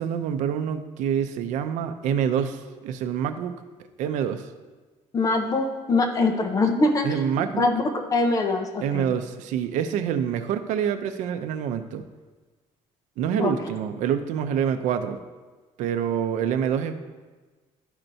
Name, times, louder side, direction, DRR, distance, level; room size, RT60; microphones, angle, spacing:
voice 1, 0.0-3.5 4.0-4.5 7.0-7.7 8.8-12.0 13.2-15.2 15.8-17.0, right 8 dB, 85° right, 9 dB, 0.5 m, -26 dB
voice 2, 5.1-7.1 7.6-7.8 8.1-9.1 13.4-13.5, left 3 dB, 30° left, 4 dB, 0.8 m, -23 dB
12.0 x 4.4 x 2.7 m, 1.3 s
cardioid pair, 155°, 12 cm